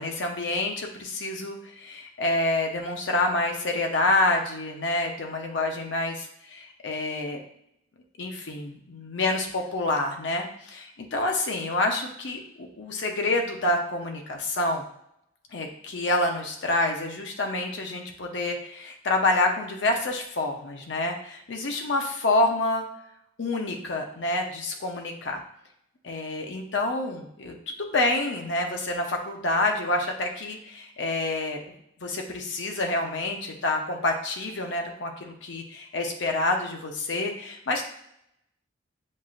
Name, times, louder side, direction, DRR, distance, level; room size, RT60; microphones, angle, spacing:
voice 1, 0.0-7.4 8.2-14.8 15.5-22.8 23.4-25.4 26.0-31.7 32.0-37.8, left 2 dB, 65° left, 2 dB, 0.7 m, -28 dB
7.4 x 2.5 x 2.4 m, 0.75 s
head